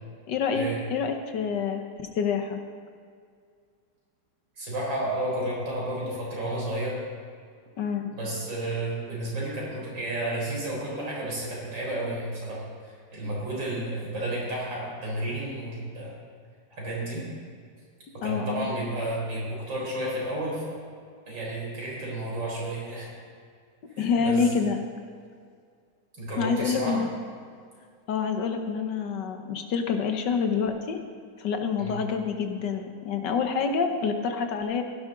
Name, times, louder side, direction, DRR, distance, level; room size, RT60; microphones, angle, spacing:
voice 1, 0.3-2.6 7.8-8.1 18.2-18.7 24.0-24.8 26.4-27.1 28.1-31.0 31.4-34.8, left 6 dB, 70° left, 6 dB, 1.7 m, -27 dB
voice 2, 4.6-7.0 8.1-16.1 16.7-17.2 18.2-20.8 21.3-23.1 23.9-24.5 26.2-27.0 31.8-31.9, right 1 dB, 90° right, -5 dB, 4.9 m, -32 dB
16.0 x 11.5 x 3.9 m, 2.2 s
omnidirectional pair, 2.0 m